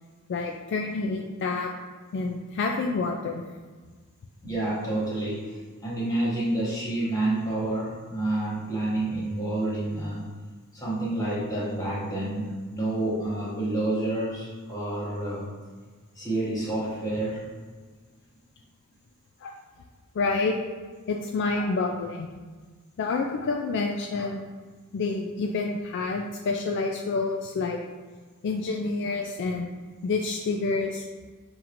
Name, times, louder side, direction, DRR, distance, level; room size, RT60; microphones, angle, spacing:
voice 1, 0.3-1.7 2.1-3.4 19.4-19.5 20.1-20.5 21.1-22.3 23.0-24.4 24.9-27.8 28.4-29.7 30.0-31.1, left 3 dB, 55° left, 1 dB, 0.3 m, -28 dB
voice 2, 4.4-10.3 10.7-15.5 16.2-17.5, right 1 dB, 15° left, -7 dB, 1.1 m, -29 dB
5.5 x 3.0 x 2.5 m, 1.4 s
head